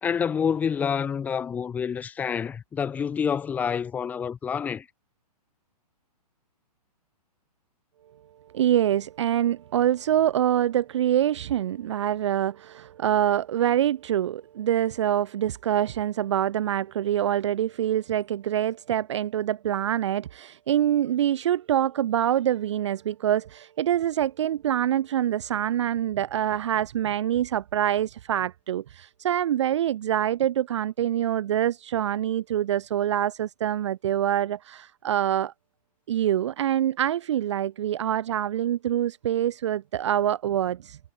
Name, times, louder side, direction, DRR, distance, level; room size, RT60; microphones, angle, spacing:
voice 1, 0.0-4.9, left 7 dB, 10° left, 1.1 m, -27 dB
voice 2, 8.5-35.5 36.1-41.0, right 11 dB, 45° right, 0.6 m, -25 dB
hypercardioid pair, 165°, 21 cm